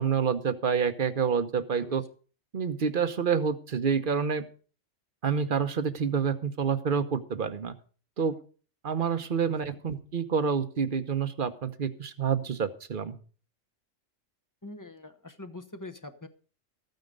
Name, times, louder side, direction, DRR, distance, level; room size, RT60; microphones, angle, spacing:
voice 1, 0.0-2.0 2.5-4.5 5.2-7.7 8.2-8.4 8.8-13.2, right 6 dB, 45° right, 10 dB, 1.0 m, -28 dB
voice 2, 14.6-16.3, left 2 dB, 15° left, 7 dB, 0.9 m, -43 dB
14.0 x 9.3 x 5.2 m, 0.39 s
omnidirectional pair, 1.3 m